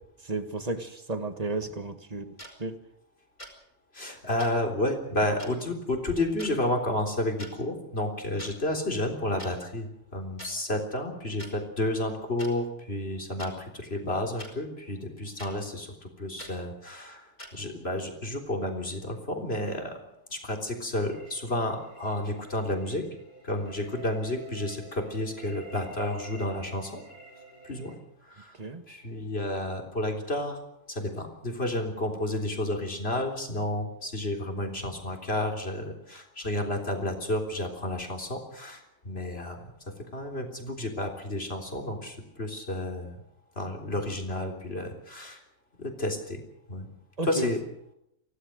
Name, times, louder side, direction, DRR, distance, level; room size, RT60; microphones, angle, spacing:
voice 1, 0.2-2.3 2.6-2.8 28.6-28.8 47.2-47.5, right 3 dB, 30° right, 8 dB, 1.7 m, -33 dB
sound 1, 2.4-2.5 3.4-3.6 4.4-4.5 5.4-5.5 6.4-6.5 7.3-7.5 8.4-8.5 9.4-9.5 10.4-10.5 11.4-11.5 12.4-12.5 13.4-13.5 14.4-14.5 15.4-15.5 16.4-16.5 17.4-17.5, equal, 35° left, 4.4 m, -43 dB
voice 2, 3.9-20.0 20.3-23.1 23.4-27.0 27.6-27.9 28.2-28.5 28.9-30.6 30.9-39.7 40.0-43.2 43.6-45.4 45.8-46.4 46.7-46.9 47.2-47.6, left 1 dB, 50° left, 2 dB, 3.9 m, -31 dB
sound 2, 21.1-27.9, right 4 dB, 70° left, 6.5 m, -50 dB
24.5 x 17.0 x 6.6 m, 0.78 s
omnidirectional pair, 1.3 m